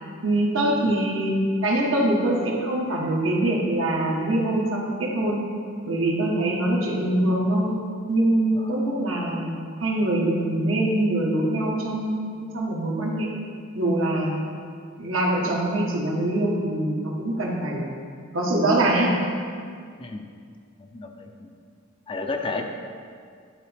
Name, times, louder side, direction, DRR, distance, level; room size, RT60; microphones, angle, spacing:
voice 1, 0.2-1.4 1.6-5.4 5.8-7.8 8.1-9.5 9.8-13.3 13.7-14.3 15.0-17.9 18.3-19.2, right 1 dB, 75° right, -2 dB, 1.2 m, -23 dB
voice 2, 20.0-20.3 20.8-21.5 22.1-22.6, left 3 dB, 25° left, 4 dB, 0.5 m, -33 dB
11.0 x 4.0 x 3.4 m, 2.2 s
head